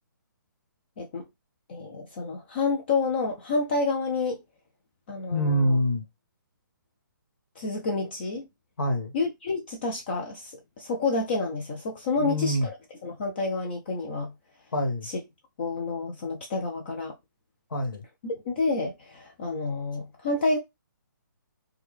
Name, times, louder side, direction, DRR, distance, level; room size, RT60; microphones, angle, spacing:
voice 1, 1.7-4.4 5.1-5.8 7.6-8.5 9.1-12.7 13.0-14.3 15.0-15.2 15.6-17.1 18.2-20.6, left 3 dB, 30° left, 0.5 m, -29 dB
voice 2, 5.3-6.0 8.8-9.1 12.2-12.7 14.7-15.1 17.7-18.0, equal, 75° left, 1.2 m, -25 dB
3.5 x 2.2 x 3.1 m
hypercardioid pair, 165°, 11 cm